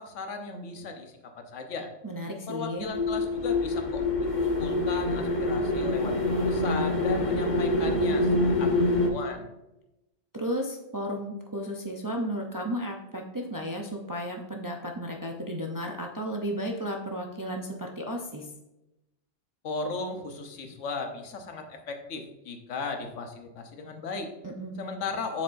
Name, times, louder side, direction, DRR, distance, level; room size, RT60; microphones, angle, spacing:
voice 1, 0.0-1.9 2.5-6.1 6.5-9.5 19.6-24.3 24.7-25.4, left 4 dB, 85° left, 5 dB, 1.2 m, -36 dB
voice 2, 2.0-2.8 10.3-18.5 24.4-24.8, equal, 30° right, 1 dB, 0.4 m, -33 dB
sound 1, 2.9-9.1, left 2 dB, 45° left, 0.9 m, -26 dB
7.8 x 6.3 x 2.6 m, 0.94 s
omnidirectional pair, 1.2 m